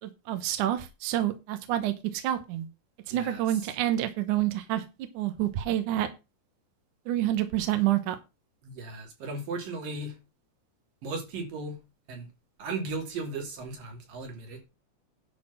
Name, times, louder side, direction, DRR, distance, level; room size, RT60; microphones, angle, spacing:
voice 1, 0.0-2.7 3.1-4.8 5.1-6.1 7.1-8.2, right 13 dB, 70° right, 2.4 m, -28 dB
voice 2, 3.1-3.4 8.6-10.2 11.0-11.8 12.1-12.3 12.6-14.6, right 3 dB, 90° right, 4.5 m, -36 dB
11.0 x 4.2 x 7.5 m
omnidirectional pair, 3.8 m